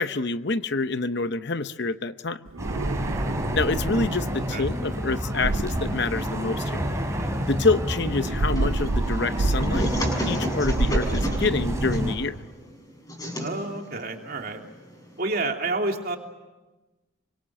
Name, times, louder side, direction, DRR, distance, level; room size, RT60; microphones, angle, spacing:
voice 1, 0.0-2.4 3.5-6.8 7.5-9.9 10.3-12.4, left 3 dB, 55° left, 11 dB, 0.8 m, -27 dB
sound 1, 2.5-4.4 5.3-6.8 8.1-10.3 10.6-12.3, right 2 dB, 80° right, 0.8 m, -29 dB
sound 2, 2.6-12.2, equal, 15° right, 3.8 m, -29 dB
sound 3, 8.5-15.2, equal, 15° left, 6.3 m, -34 dB
voice 2, 13.4-14.6 15.2-16.2, right 2 dB, 45° right, 2 dB, 3.1 m, -29 dB
27.0 x 25.0 x 7.7 m, 1.1 s
head